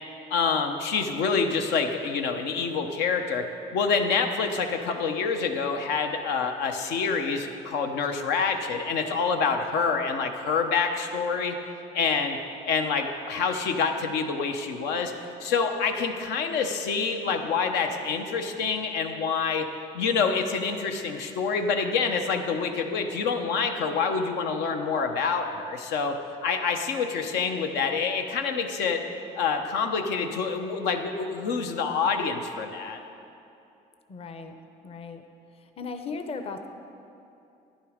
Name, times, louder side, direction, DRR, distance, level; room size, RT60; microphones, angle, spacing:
voice 1, 0.3-3.4 3.7-11.6 11.9-12.4 12.6-15.1 15.4-19.7 19.9-26.1 26.4-29.0 29.3-33.0, left 5 dB, 90° left, 5 dB, 0.9 m, -27 dB
voice 2, 34.1-34.5 34.8-35.2 35.8-36.7, left 4 dB, 35° left, 7 dB, 0.7 m, -36 dB
10.5 x 10.5 x 5.1 m, 2.7 s
cardioid pair, 110°, 17 cm